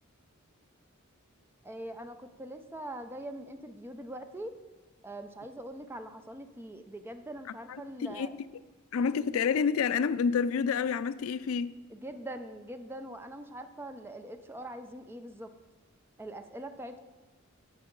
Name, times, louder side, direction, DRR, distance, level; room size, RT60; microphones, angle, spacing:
voice 1, 1.6-4.6 5.0-8.4 11.9-15.5 16.2-17.0, right 1 dB, 10° right, 0.5 m, -42 dB
voice 2, 7.7-8.3 8.9-11.7, left 6 dB, 75° left, 0.4 m, -28 dB
11.0 x 8.0 x 3.8 m
head